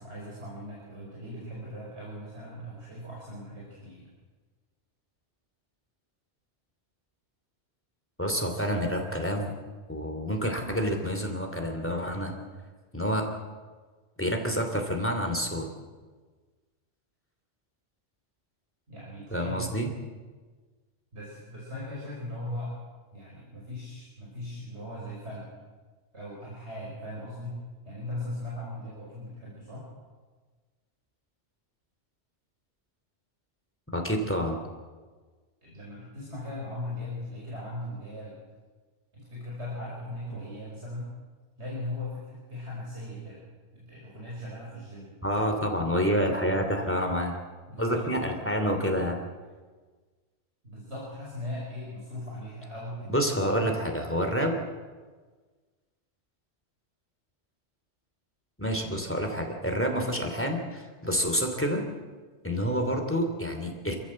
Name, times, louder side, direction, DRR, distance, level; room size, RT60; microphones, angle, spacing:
voice 1, 0.0-4.1 18.9-19.9 21.1-22.7 23.1-25.5 26.1-27.6 27.8-29.9 35.6-38.4 39.1-41.1 41.6-43.4 43.7-45.1 47.7-48.0 50.6-53.7, left 1 dB, 70° right, -5 dB, 5.7 m, -39 dB
voice 2, 8.2-9.5 9.9-12.3 12.9-13.3 14.2-15.7 19.3-19.9 33.9-34.6 45.2-47.4 47.8-49.2 53.1-54.5 58.6-61.8 62.4-63.9, equal, 10° left, 3 dB, 3.0 m, -28 dB
27.5 x 14.5 x 7.7 m, 1.4 s
omnidirectional pair, 1.2 m